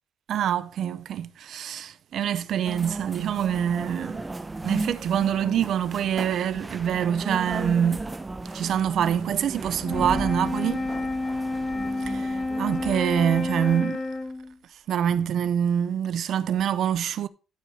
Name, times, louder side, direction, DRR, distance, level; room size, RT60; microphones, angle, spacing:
voice 1, 0.3-4.2 4.6-8.0 8.5-10.9 12.1-14.0 14.9-17.3, right 9 dB, 70° right, 0.6 m, -25 dB
sound 1, 2.6-13.8, right 2 dB, 20° right, 0.8 m, -35 dB
Wind instrument woodwind instrument, 9.8-14.6, left 2 dB, 25° left, 1.4 m, -30 dB
12.5 x 4.7 x 4.3 m
cardioid pair, 90°, 0 cm